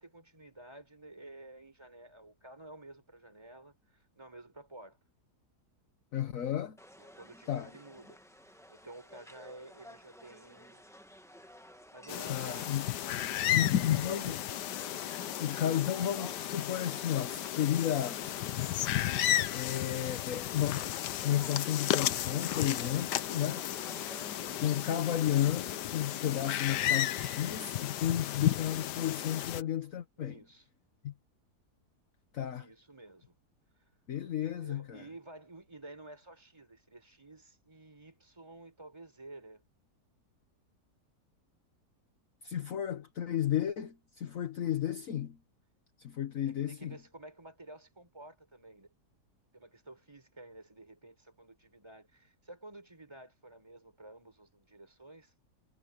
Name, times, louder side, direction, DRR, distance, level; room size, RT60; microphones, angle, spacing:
voice 1, 0.0-5.0 7.0-8.2 8.5-10.9 11.9-14.4 23.9-24.7 30.2-30.7 32.5-33.3 34.3-39.6 46.5-48.9 49.5-55.3, right 2 dB, 15° right, 5.0 m, -52 dB
voice 2, 6.1-6.8 7.5-7.7 12.3-12.9 13.5-14.4 15.4-18.3 19.5-20.9 21.2-23.6 24.6-30.3 31.0-31.1 32.3-32.6 34.1-35.0 42.4-45.4 46.0-46.9, left 10 dB, 55° left, 1.4 m, -33 dB
sound 1, 6.8-24.8, equal, ahead, 1.1 m, -53 dB
sound 2, 12.1-29.6, left 12 dB, 90° left, 1.4 m, -33 dB
omnidirectional pair, 1.7 m